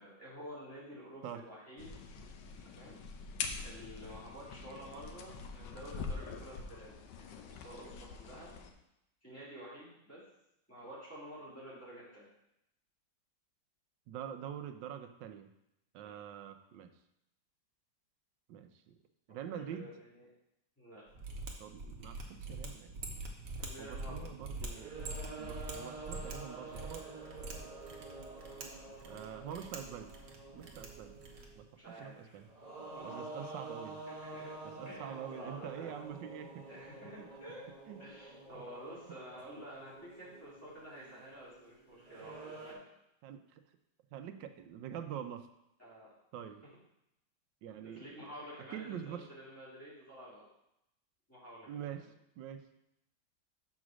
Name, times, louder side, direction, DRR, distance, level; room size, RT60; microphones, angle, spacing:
voice 1, 0.0-2.0 2.6-3.0 3.6-8.5 9.2-10.2 10.7-12.3 16.0-16.2 19.3-20.3 20.8-21.0 23.6-24.7 28.8-29.4 31.7-32.4 32.9-33.6 34.1-34.5 34.8-35.9 36.7-37.6 38.0-42.9 45.8-46.1 47.8-50.4 51.3-52.1, equal, 10° left, -9 dB, 3.1 m, -50 dB
sound 1, 1.8-8.7, left 5 dB, 85° left, 1.4 m, -44 dB
voice 2, 14.1-15.5 15.9-16.9 18.5-18.9 19.3-19.9 21.6-23.0 23.8-24.9 25.4-27.0 29.0-30.1 30.5-31.2 31.5-32.5 33.0-34.0 34.8-36.5 37.2-37.3 37.9-38.0 39.6-39.7 43.2-43.6 44.1-45.5 46.3-46.6 47.6-48.1 48.7-49.3 51.7-52.1 52.4-52.6, right 9 dB, 85° right, 8 dB, 1.4 m, -45 dB
Mechanisms, 21.1-31.6, right 2 dB, 55° right, 1.4 m, -45 dB
sound 2, 24.5-31.7 32.4-42.7, right 3 dB, 25° right, 1.2 m, -49 dB
6.3 x 4.9 x 6.1 m, 0.83 s
omnidirectional pair, 1.9 m